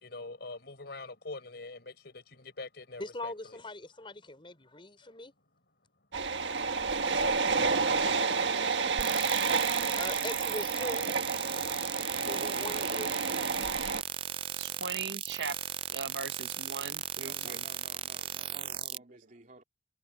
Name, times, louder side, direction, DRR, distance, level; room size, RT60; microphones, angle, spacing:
voice 1, 0.0-3.3, left 3 dB, 65° left, 4.6 m, -44 dB
voice 2, 3.0-5.3 9.7-11.1 11.7-13.2 14.6-14.8, left 2 dB, 30° left, 5.4 m, -41 dB
sound 1, 6.1-14.0, right 4 dB, 90° right, 1.5 m, -30 dB
sound 2, 9.0-19.0, right 10 dB, 30° right, 0.4 m, -37 dB
voice 3, 14.6-15.6 15.9-17.6, right 5 dB, 75° right, 1.2 m, -39 dB
voice 4, 17.2-19.6, right 3 dB, 45° right, 3.2 m, -53 dB
head